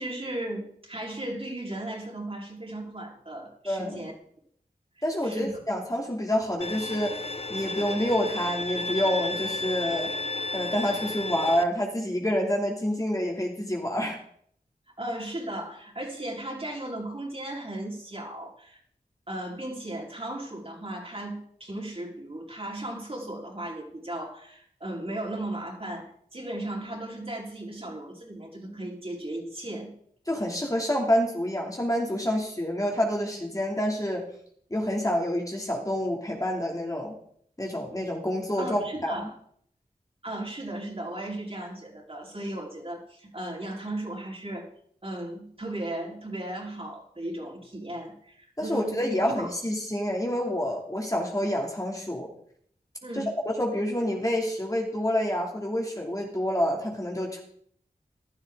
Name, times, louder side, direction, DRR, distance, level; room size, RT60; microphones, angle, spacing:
voice 1, 0.0-4.1 5.2-5.5 15.0-18.8 19.3-29.9 38.6-39.3 40.2-44.7 45.0-49.5 53.0-53.4, right 1 dB, 40° right, -2 dB, 4.5 m, -36 dB
voice 2, 3.6-4.0 5.0-7.2 7.5-10.1 10.5-14.2 30.3-34.3 34.7-37.2 37.6-39.3 48.6-52.3 53.1-53.2 53.6-57.4, equal, 20° left, 0 dB, 2.9 m, -28 dB
Bowed string instrument, 6.6-11.6, left 2 dB, 40° left, 0.9 m, -33 dB
15.0 x 12.0 x 3.9 m, 0.63 s
wide cardioid pair, 60°, 16 cm